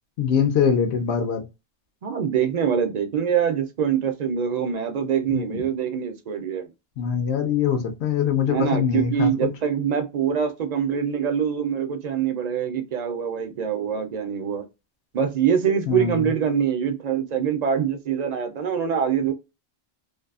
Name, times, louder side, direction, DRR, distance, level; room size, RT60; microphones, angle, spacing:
voice 1, 0.2-1.4 5.3-5.6 7.0-9.5 15.9-16.3, left 7 dB, 85° left, 0.9 m, -23 dB
voice 2, 2.0-6.7 8.5-14.6 15.1-19.3, right 8 dB, 50° right, 0.5 m, -24 dB
2.6 x 2.3 x 2.3 m
omnidirectional pair, 1.1 m